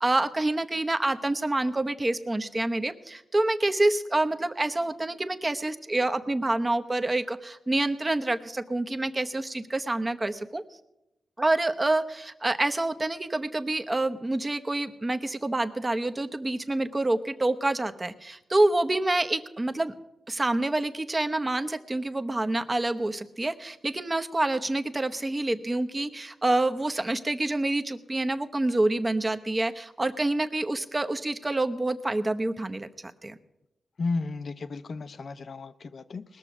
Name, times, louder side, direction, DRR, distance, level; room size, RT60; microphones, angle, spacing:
voice 1, 0.0-10.6 11.4-19.9 20.3-33.3, right 2 dB, 25° right, 8 dB, 0.9 m, -27 dB
voice 2, 34.0-36.4, left 3 dB, 55° left, 13 dB, 0.7 m, -33 dB
20.0 x 6.8 x 6.0 m, 0.92 s
cardioid pair, 85°, 0 cm